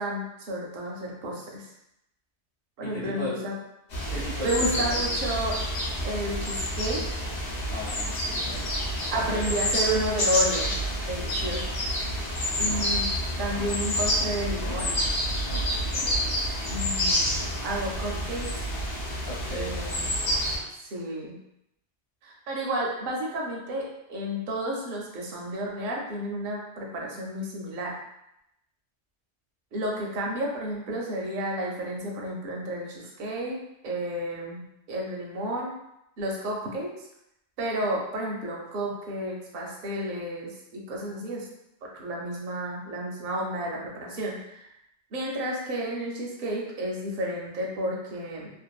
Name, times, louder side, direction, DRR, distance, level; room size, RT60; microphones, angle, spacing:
voice 1, 0.0-1.7 2.8-3.5 4.4-5.6 6.0-7.0 9.1-10.7 11.0-11.8 12.6-13.1 13.4-15.0 16.7-18.5 19.5-20.1 20.8-21.3 22.2-27.9 29.7-34.6 34.9-35.7 36.2-36.9 37.6-41.5 41.9-44.7 45.1-48.5, right 1 dB, 55° right, -2 dB, 0.6 m, -31 dB
voice 2, 2.8-3.4 4.1-5.2 7.7-8.7 9.0-9.5 12.6-12.8 19.2-19.9, left 1 dB, 45° left, -10 dB, 1.1 m, -37 dB
sound 1, 3.9-20.6, equal, 75° left, 1.1 m, -28 dB
2.6 x 2.4 x 2.3 m, 0.82 s
omnidirectional pair, 1.2 m